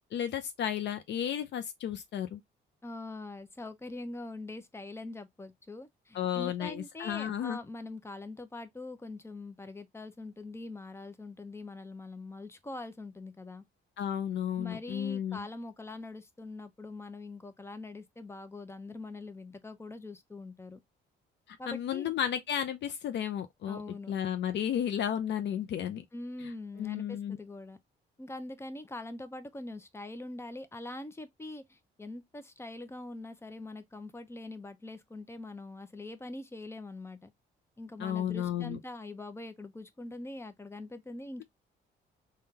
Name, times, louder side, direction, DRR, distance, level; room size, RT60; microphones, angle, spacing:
voice 1, 0.1-2.4 6.1-7.6 14.0-15.5 21.5-23.8 24.1-26.0 26.4-26.5 26.8-27.4 38.0-38.8, left 9 dB, 60° left, 0.5 m, -33 dB
voice 2, 2.8-13.6 14.6-20.8 21.6-22.1 23.7-24.1 26.1-27.8 28.2-37.3 37.8-41.4, left 2 dB, 15° left, 0.5 m, -43 dB
3.6 x 2.3 x 2.7 m
cardioid pair, 90°, 20 cm